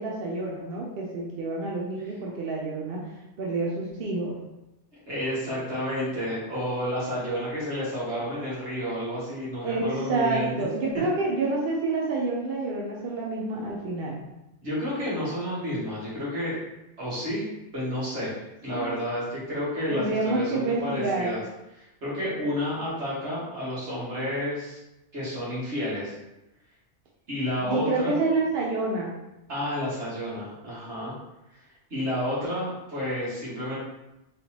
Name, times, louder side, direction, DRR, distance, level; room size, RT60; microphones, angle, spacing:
voice 1, 0.0-3.1 3.4-4.3 9.6-14.2 18.7-19.0 19.9-21.3 27.6-29.1, right 3 dB, 60° right, -3 dB, 0.8 m, -28 dB
voice 2, 5.1-10.5 14.6-16.6 17.0-17.5 17.7-18.3 18.6-21.4 21.7-24.8 25.1-26.2 27.3-28.1 29.5-31.2 31.9-33.8, equal, 80° right, -8 dB, 2.1 m, -30 dB
4.0 x 3.4 x 2.9 m, 0.93 s
omnidirectional pair, 1.2 m